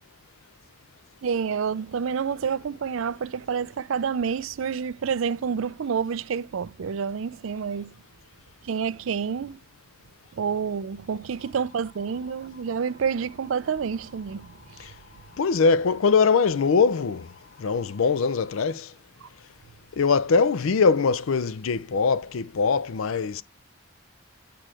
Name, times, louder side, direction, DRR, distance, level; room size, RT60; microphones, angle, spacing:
voice 1, 1.2-7.9 8.6-9.6 10.3-14.9 19.2-19.3, right 6 dB, 80° right, 0.4 m, -28 dB
sound 1, 11.4-18.7, left 3 dB, 40° left, 2.4 m, -55 dB
voice 2, 15.4-17.3 17.6-18.9 19.9-23.4, left 5 dB, 85° left, 0.5 m, -22 dB
8.9 x 4.6 x 4.8 m
head